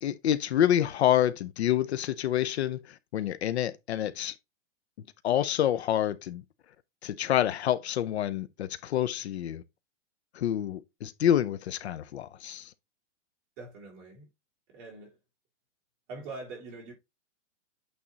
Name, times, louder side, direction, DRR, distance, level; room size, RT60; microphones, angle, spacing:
voice 1, 0.0-4.3 5.2-6.4 7.0-9.6 10.3-12.7, left 11 dB, 60° left, 0.7 m, -27 dB
voice 2, 13.6-14.3 14.7-15.2 16.1-16.9, right 3 dB, 25° right, 3.7 m, -43 dB
8.7 x 3.5 x 3.9 m
hypercardioid pair, 170°, 36 cm